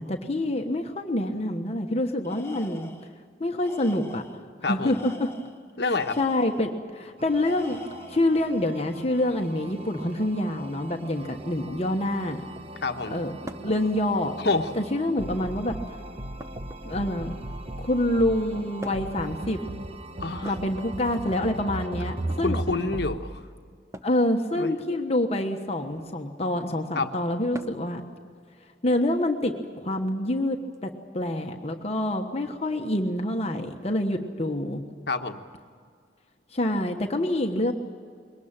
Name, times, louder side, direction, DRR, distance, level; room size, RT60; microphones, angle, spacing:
voice 1, 0.0-2.9 3.4-4.2 4.6-5.3 6.2-7.8 8.1-12.4 13.1-13.3 13.6-14.3 14.7-15.7 16.8-17.4 17.8-19.6 20.4-22.6 24.0-28.0 28.8-30.6 30.8-34.8 36.5-37.7, left 1 dB, 35° left, 4 dB, 1.3 m, -26 dB
Tools, 2.2-3.1 3.6-4.4 4.8-6.7 7.4-8.3, left 2 dB, 15° left, 1.1 m, -45 dB
voice 2, 4.6-5.0 5.8-6.2 12.8-13.2 14.4-14.7 20.2-20.5 22.4-23.4 24.5-24.7 26.9-27.1 35.1-35.4, left 3 dB, 65° left, 6 dB, 1.2 m, -27 dB
sound 1, 7.2-23.2, right 1 dB, 35° right, 1.2 m, -38 dB
sound 2, 13.5-13.8 14.9-15.4 16.4-17.5 18.8-19.2 20.4-21.4 22.1-22.5 23.9-24.2 25.8-26.2 27.5-27.9 29.4-29.5 30.7-30.8, right 1 dB, 15° right, 0.8 m, -43 dB
22.5 x 19.0 x 8.9 m, 2.1 s
head